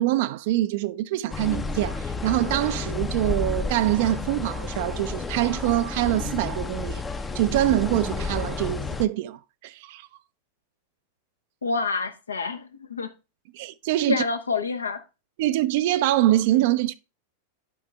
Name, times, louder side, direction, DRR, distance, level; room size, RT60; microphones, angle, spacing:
voice 1, 0.0-7.0 7.3-10.1 13.5-14.2 15.4-16.9, right 15 dB, 50° right, 0.4 m, -24 dB
sound 1, 1.3-9.1, left 3 dB, 15° left, 0.6 m, -31 dB
voice 2, 11.6-13.1 14.1-15.0, left 4 dB, 75° left, 0.9 m, -27 dB
11.5 x 5.1 x 3.3 m
figure-of-eight pair, 90°, 0 cm